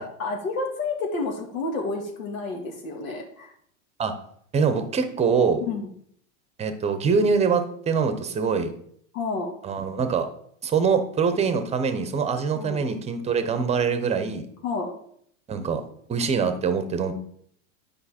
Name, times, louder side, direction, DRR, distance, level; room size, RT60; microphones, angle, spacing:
voice 1, 0.0-3.5 5.7-5.9 9.1-9.5 12.5-12.8 14.6-14.9, left 3 dB, 85° left, 1 dB, 1.9 m, -30 dB
voice 2, 4.5-5.6 6.6-8.7 9.6-10.3 10.6-14.4 15.5-15.8 16.1-17.1, right 5 dB, 15° right, 9 dB, 0.8 m, -24 dB
9.6 x 5.3 x 4.3 m, 0.66 s
supercardioid pair, 135°, 40 cm